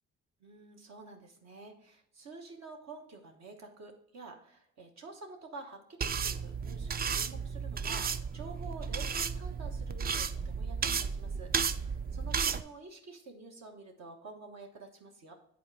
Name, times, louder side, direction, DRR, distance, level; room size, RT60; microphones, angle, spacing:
voice 1, 0.4-15.3, right 3 dB, 60° right, 2 dB, 1.3 m, -49 dB
sound 1, 6.0-12.6, right 6 dB, 30° right, 0.4 m, -33 dB
8.5 x 4.2 x 4.8 m, 0.70 s
cardioid pair, 90°, 30 cm